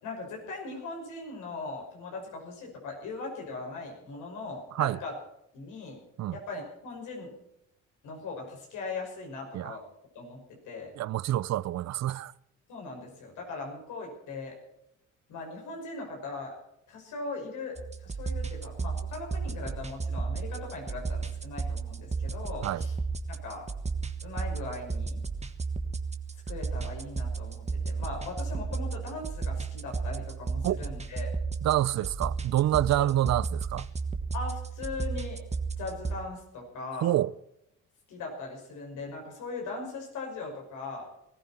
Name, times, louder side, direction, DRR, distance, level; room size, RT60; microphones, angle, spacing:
voice 1, 0.0-5.2 5.5-6.0 6.3-7.3 8.0-9.8 10.1-10.9 12.7-14.6 15.3-16.6 16.9-17.8 18.0-22.9 23.3-23.7 24.2-25.2 26.5-31.3 33.0-33.1 34.3-35.4 35.8-37.1 38.1-41.1, left 3 dB, 85° left, 5.9 m, -39 dB
voice 2, 11.0-12.3 22.6-22.9 30.6-30.8 31.6-33.9 37.0-37.3, right 13 dB, 60° right, 0.5 m, -27 dB
sound 1, 17.8-36.2, right 4 dB, 20° right, 1.4 m, -34 dB
19.5 x 14.5 x 4.4 m
cardioid pair, 90°, 30 cm